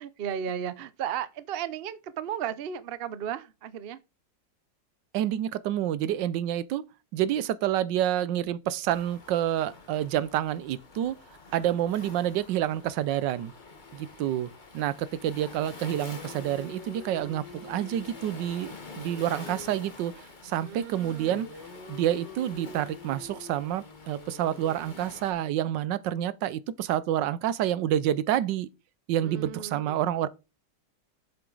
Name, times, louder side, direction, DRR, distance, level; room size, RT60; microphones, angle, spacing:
voice 1, 0.0-4.0 11.5-11.8 20.6-21.4 29.2-30.0, right 9 dB, 65° right, 0.5 m, -35 dB
voice 2, 5.1-6.8 7.1-11.2 11.5-13.5 13.9-14.5 14.7-18.7 19.0-20.1 20.4-21.5 21.9-28.7 29.1-30.3, right 11 dB, 80° right, 1.3 m, -28 dB
Waves surf, 8.9-25.3, left 3 dB, 30° left, 1.3 m, -48 dB
sound 1, 15.8-20.0 21.3-25.3, left 4 dB, 70° left, 2.0 m, -46 dB
7.9 x 7.0 x 3.9 m
omnidirectional pair, 1.9 m